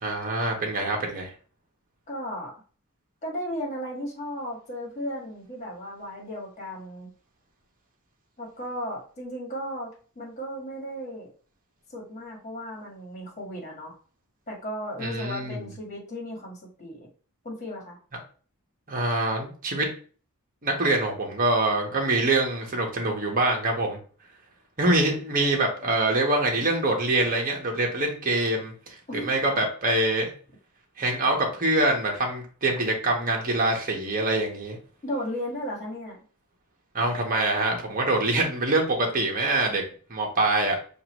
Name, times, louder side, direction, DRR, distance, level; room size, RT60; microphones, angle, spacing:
voice 1, 0.0-1.3 15.0-15.6 18.9-19.9 20.6-24.0 24.8-28.7 29.1-30.3 31.0-34.8 36.9-39.8 40.1-40.8, right 2 dB, 40° right, 0 dB, 1.2 m, -24 dB
voice 2, 2.1-2.5 3.2-7.1 8.4-9.9 10.1-11.3 11.9-14.0 14.5-17.1 17.4-18.0 29.1-29.3 35.0-36.2, equal, 35° left, -1 dB, 1.7 m, -35 dB
6.6 x 2.6 x 3.0 m, 0.41 s
head